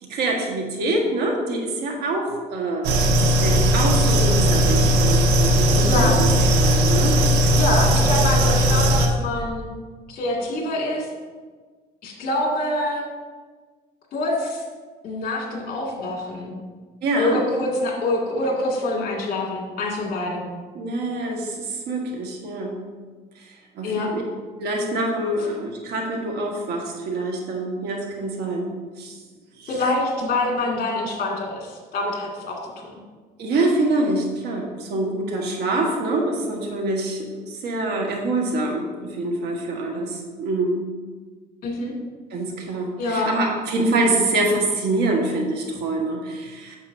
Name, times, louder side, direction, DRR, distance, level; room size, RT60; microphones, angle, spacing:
voice 1, 0.0-2.9 3.2-6.3 6.6-7.2 8.4-8.5 17.0-17.4 20.7-22.8 23.4-24.2 24.6-29.2 29.6-29.7 33.4-40.8 42.3-46.8, right 2 dB, 75° right, 1 dB, 1.5 m, -25 dB
sound 1, 2.8-9.1, equal, 90° right, 0.7 m, -18 dB
voice 2, 5.8-6.2 7.5-9.6 10.1-11.1 12.0-13.0 14.1-14.6 15.0-16.6 17.2-20.5 23.8-24.1 29.7-32.7 41.6-42.0 43.0-43.3, left 2 dB, 60° left, -1 dB, 2.2 m, -25 dB
8.9 x 6.8 x 2.7 m, 1.4 s
cardioid pair, 110°, 17 cm